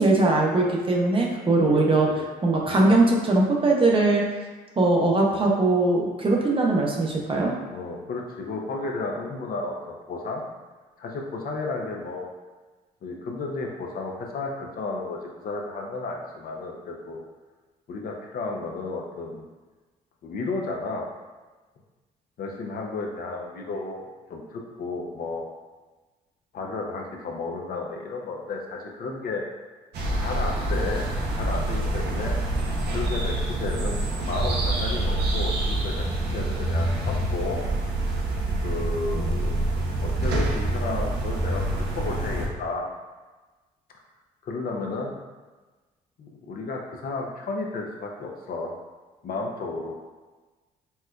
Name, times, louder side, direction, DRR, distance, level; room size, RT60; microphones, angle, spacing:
voice 1, 0.0-2.1 2.4-4.2 4.8-7.5, right 2 dB, 30° right, -1 dB, 0.7 m, -21 dB
voice 2, 1.7-2.3 7.7-10.4 11.0-12.3 13.0-17.2 17.9-19.4 20.2-21.1 22.4-25.5 26.5-29.4 30.2-31.1 31.4-32.4 32.9-37.6 38.6-39.6 40.0-42.9 44.4-45.1 46.2-48.8 49.2-50.1, left 3 dB, 55° left, 0 dB, 0.6 m, -33 dB
sound 1, 29.9-42.5, right 1 dB, 65° right, 0.6 m, -26 dB
4.3 x 2.1 x 2.3 m, 1.3 s
supercardioid pair, 60°, 18 cm